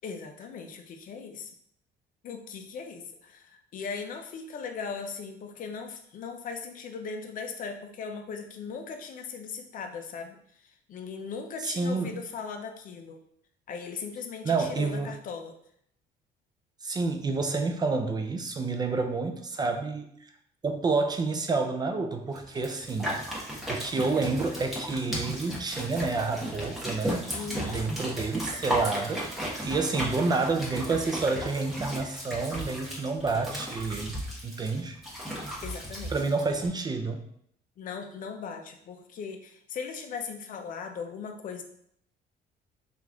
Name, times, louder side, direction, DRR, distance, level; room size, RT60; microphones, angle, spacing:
voice 1, 0.0-1.5 2.2-13.2 13.7-15.5 27.3-27.8 35.6-36.1 37.8-41.6, left 5 dB, 55° left, 5 dB, 0.5 m, -38 dB
voice 2, 11.6-12.1 14.4-15.1 16.8-20.3 20.6-23.2 23.7-27.3 27.7-29.3 29.6-35.0 36.1-37.2, right 3 dB, 25° right, 5 dB, 0.3 m, -29 dB
sound 1, 22.4-36.7, equal, ahead, 1.0 m, -35 dB
3.1 x 2.4 x 3.5 m, 0.69 s
cardioid pair, 110°, 17 cm